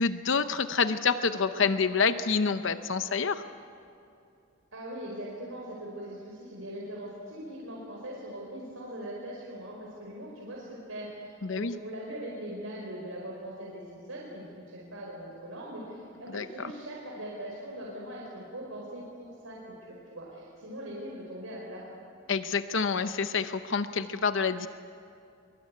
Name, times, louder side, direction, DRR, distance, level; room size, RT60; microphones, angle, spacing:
voice 1, 0.0-3.4 11.4-11.8 16.3-16.5 22.3-24.7, left 5 dB, 60° left, 11 dB, 0.8 m, -27 dB
voice 2, 4.7-21.8, right 1 dB, 85° right, -3 dB, 5.0 m, -41 dB
23.5 x 23.5 x 9.4 m, 2.6 s
head